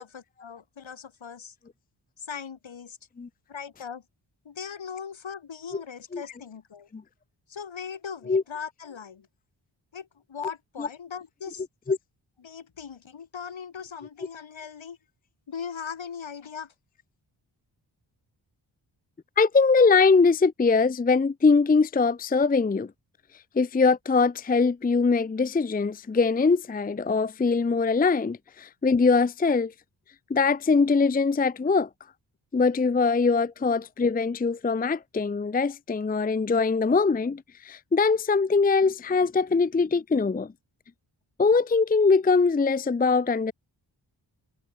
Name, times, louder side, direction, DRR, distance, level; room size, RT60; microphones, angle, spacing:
voice 1, 0.0-1.5 2.2-3.0 3.5-4.0 4.4-6.9 7.5-9.3 9.9-11.6 12.4-15.0 15.5-16.7, left 7 dB, 70° left, 4.2 m, -39 dB
voice 2, 19.4-22.9 23.6-29.7 30.3-31.9 32.5-40.5 41.4-43.5, left 4 dB, 20° left, 0.6 m, -22 dB
supercardioid pair, 40°, 48 cm